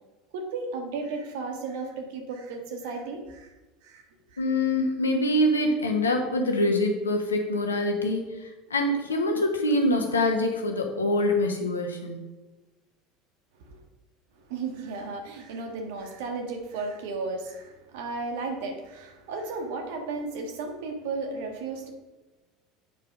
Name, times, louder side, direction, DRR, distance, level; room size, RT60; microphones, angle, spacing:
voice 1, 0.3-3.5 3.8-4.0 4.3-4.4 13.6-13.8 14.5-21.9, right 3 dB, 65° right, 5 dB, 1.5 m, -34 dB
voice 2, 4.4-8.2 8.7-12.2, left 1 dB, 90° left, 3 dB, 1.2 m, -25 dB
8.3 x 4.8 x 5.3 m, 1.1 s
hypercardioid pair, 75°, 0 cm